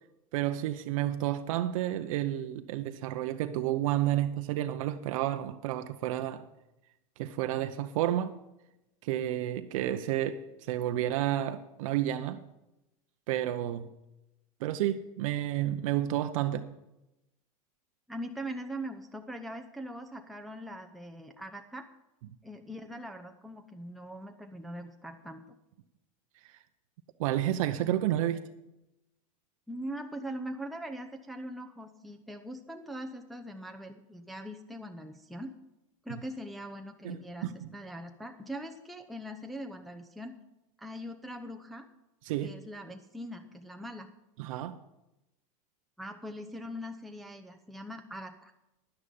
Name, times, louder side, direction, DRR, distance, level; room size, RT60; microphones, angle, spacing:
voice 1, 0.3-6.5 7.2-8.4 9.0-12.4 13.3-13.9 14.6-16.6 27.2-28.4 37.0-37.7 42.3-42.5 44.4-44.8, right 13 dB, 70° right, 0.7 m, -31 dB
voice 2, 18.1-21.8 22.4-25.4 29.7-35.5 36.0-40.4 40.8-41.9 42.4-44.1 46.0-48.5, equal, ahead, 0.7 m, -41 dB
11.0 x 9.8 x 5.3 m
hypercardioid pair, 115°, 18 cm